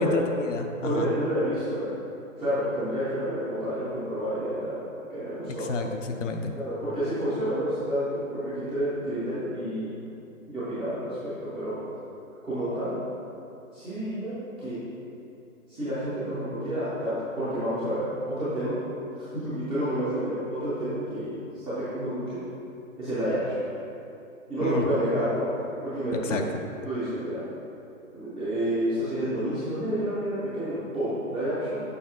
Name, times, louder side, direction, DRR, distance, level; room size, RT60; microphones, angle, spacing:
voice 1, 0.0-1.1 5.7-6.5 24.6-24.9 26.2-26.4, left 3 dB, 60° left, 4 dB, 0.8 m, -29 dB
voice 2, 0.8-1.9 2.4-4.8 5.1-5.7 6.5-9.9 10.5-11.8 12.4-13.0 13.7-14.8 15.7-18.8 19.3-22.4 23.0-23.7 24.5-25.5 25.8-26.4 26.8-27.4 28.1-31.8, equal, ahead, -19 dB, 0.4 m, -29 dB
7.0 x 5.2 x 3.8 m, 2.7 s
figure-of-eight pair, 130°, 42 cm